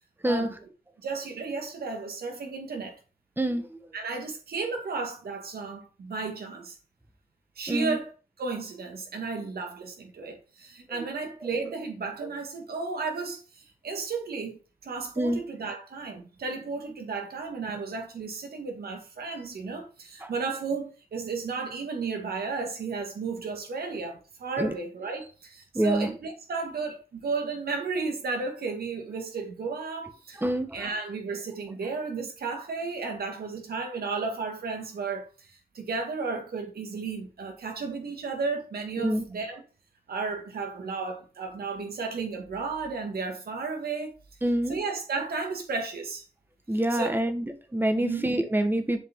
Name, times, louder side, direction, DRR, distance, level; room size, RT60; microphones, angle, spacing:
voice 1, 1.0-3.0 3.9-6.8 7.6-8.1 8.4-30.4 30.7-35.3 35.7-39.6 40.1-44.1 44.7-46.2 46.9-47.2 48.0-48.2, right 4 dB, 70° right, 1.9 m, -33 dB
voice 2, 3.4-3.8 7.7-8.0 10.9-11.0 12.2-12.3 15.2-15.4 20.2-20.3 24.6-24.7 25.7-26.1 30.4-30.9 39.0-39.2 44.4-44.8 46.7-49.0, right 1 dB, 10° right, 1.3 m, -26 dB
7.7 x 4.9 x 3.6 m
cardioid pair, 70°, 16 cm